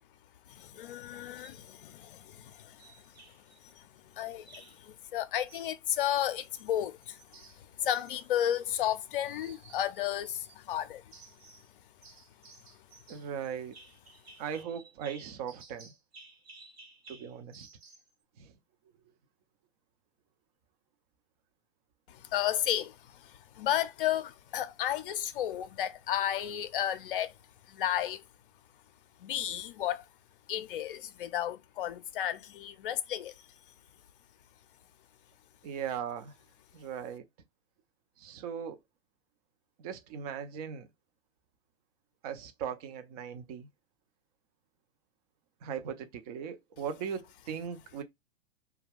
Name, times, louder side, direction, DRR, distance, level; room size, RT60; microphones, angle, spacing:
voice 1, 0.5-11.8 12.4-12.5 22.1-27.4 27.6-28.2 29.2-30.1 30.5-33.5, left 11 dB, 55° left, 0.5 m, -33 dB
sound 1, 1.4-1.6 2.8-3.6 4.4-4.9 5.5-6.7 7.0-9.0 9.2-10.6 11.1-11.7 12.0-18.1, right 3 dB, 70° right, 1.1 m, -55 dB
voice 2, 13.1-13.8 14.4-15.9 17.1-17.7 18.4-18.5 35.6-36.3 36.7-37.2 38.2-38.8 39.8-40.9 42.2-43.7 45.6-48.0, right 8 dB, 35° right, 0.6 m, -38 dB
2.2 x 2.2 x 3.2 m
figure-of-eight pair, 115°, 32 cm